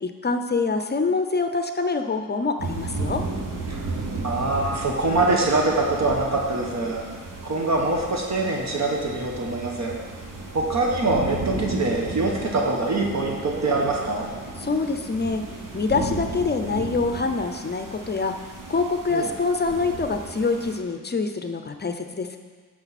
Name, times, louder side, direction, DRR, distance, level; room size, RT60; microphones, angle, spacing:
voice 1, 0.0-3.2 14.6-18.4 18.7-22.4, left 4 dB, 30° left, 7 dB, 0.6 m, -25 dB
sound 1, 2.6-20.8, right 3 dB, 75° right, 1.3 m, -34 dB
voice 2, 4.2-7.0 7.4-10.0 10.5-14.3 19.1-19.3, right 2 dB, 55° right, 0 dB, 1.2 m, -24 dB
10.5 x 6.2 x 4.2 m, 1.5 s
wide cardioid pair, 105°, 33 cm